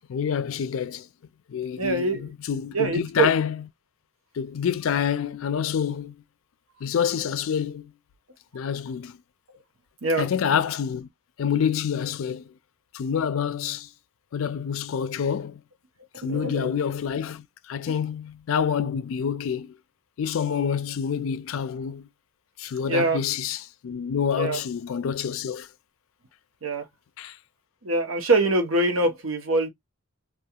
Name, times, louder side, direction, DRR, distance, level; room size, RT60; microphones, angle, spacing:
voice 1, 0.1-1.1 1.5-3.6 4.3-6.2 6.8-7.9 8.5-9.2 10.2-11.1 11.4-12.5 12.9-13.9 14.3-15.6 16.2-19.7 20.2-22.1 22.6-25.7 27.2-27.4, left 7 dB, 70° left, 0.4 m, -27 dB
voice 2, 1.8-2.2 2.7-3.3 10.0-10.3 16.2-16.7 22.9-23.2 24.4-24.6 26.6-26.8 27.8-29.7, right 2 dB, 75° right, 0.8 m, -24 dB
2.3 x 2.3 x 2.8 m
head